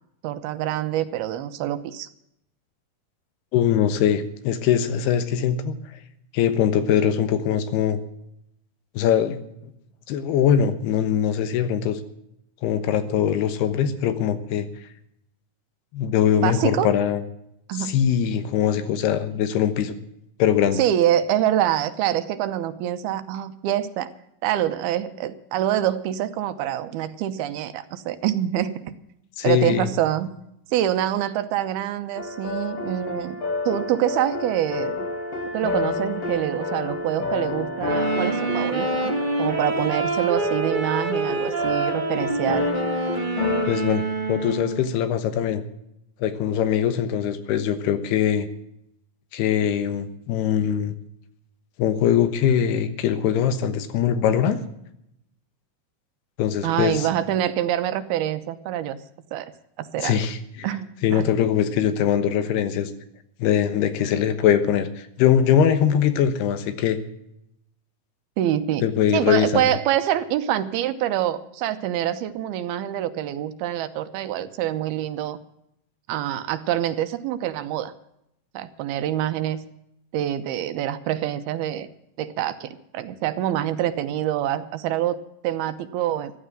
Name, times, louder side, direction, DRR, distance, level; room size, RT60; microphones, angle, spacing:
voice 1, 0.2-2.1 16.4-16.9 17.7-17.9 20.8-24.1 24.4-28.9 29.4-30.3 30.7-33.4 33.7-35.1 35.5-39.1 39.4-42.7 56.6-59.0 59.3-59.5 59.8-60.3 60.6-61.3 68.4-68.8 69.1-75.4 76.1-77.9 78.5-79.6 80.1-81.9 82.2-86.3, right 12 dB, 80° right, 10 dB, 2.7 m, -25 dB
voice 2, 3.5-5.8 6.3-8.0 9.0-9.4 9.6-9.7 10.1-12.0 12.6-14.7 15.9-17.2 17.7-19.9 20.4-20.8 29.4-29.9 43.7-45.6 46.2-48.5 49.3-51.0 51.8-54.6 56.4-57.1 60.0-60.7 61.0-62.9 63.4-67.0 68.8-69.7, left 9 dB, 90° left, 11 dB, 3.3 m, -22 dB
sound 1, 32.2-43.7, left 3 dB, 45° left, 2.7 m, -29 dB
sound 2, 37.8-44.9, right 3 dB, 25° right, 1.1 m, -27 dB
14.5 x 11.0 x 7.5 m, 0.77 s
omnidirectional pair, 4.5 m